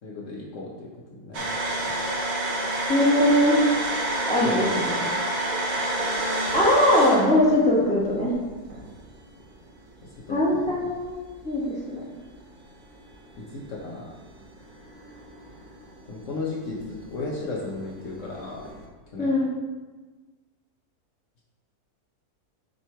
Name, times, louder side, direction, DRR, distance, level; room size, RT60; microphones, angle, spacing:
voice 1, 0.0-2.0 4.4-4.7 10.3-10.4 13.4-14.1 16.1-18.7 19.1-19.3, left 3 dB, 60° left, -3 dB, 1.2 m, -35 dB
sound 1, 1.3-9.0 9.5-9.6 11.1-11.6 12.7-16.8 17.1-17.4 17.6-18.8, right 2 dB, 65° right, 1.4 m, -29 dB
voice 2, 2.9-3.6 4.2-5.0 6.5-8.3 10.3-11.2 11.4-12.0 19.2-19.5, left 1 dB, 5° left, -5 dB, 1.1 m, -21 dB
7.0 x 3.2 x 4.4 m, 1.3 s
omnidirectional pair, 1.6 m